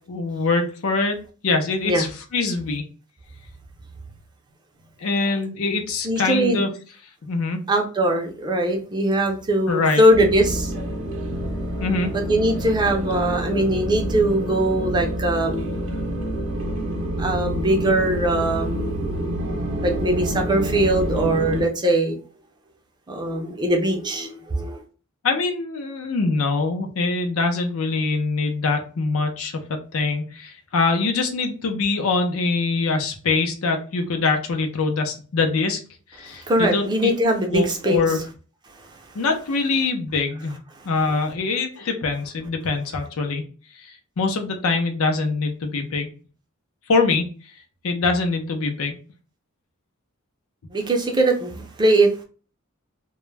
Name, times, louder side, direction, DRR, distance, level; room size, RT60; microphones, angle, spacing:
voice 1, 0.1-1.2 1.4-2.9 5.0-6.7 7.2-7.6 9.7-10.0 11.8-12.2 25.2-35.8 36.1-37.1 37.5-38.2 39.1-40.6 40.8-43.5 43.7-46.1 46.9-47.3 47.8-49.0, left 3 dB, 75° left, 5 dB, 0.5 m, -23 dB
voice 2, 6.0-6.6 7.7-10.7 12.1-15.6 17.2-19.0 19.8-22.2 23.1-24.8 36.2-38.0 38.9-39.0 50.7-52.2, right 1 dB, 20° right, 2 dB, 0.4 m, -21 dB
sound 1, 10.1-21.6, right 1 dB, 65° right, 0.6 m, -27 dB
2.2 x 2.0 x 3.2 m, 0.38 s
head